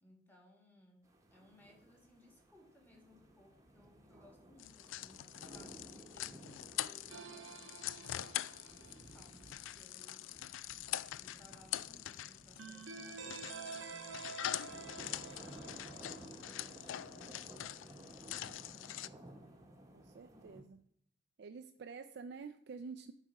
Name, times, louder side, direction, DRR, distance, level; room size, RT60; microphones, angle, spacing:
voice 1, 0.0-7.5 7.9-8.3 8.8-10.3 11.2-18.4 18.7-19.7, left 1 dB, 10° left, 1 dB, 1.7 m, -64 dB
sound 1, 1.0-20.6, right 1 dB, 15° right, 1.0 m, -56 dB
sound 2, 4.6-19.1, left 13 dB, 80° left, 0.3 m, -44 dB
sound 3, 7.1-9.4 12.6-17.0, right 5 dB, 75° right, 0.8 m, -50 dB
voice 2, 19.9-20.8 21.4-23.1, right 5 dB, 55° right, 7 dB, 0.4 m, -48 dB
10.5 x 4.1 x 5.2 m, 0.67 s
head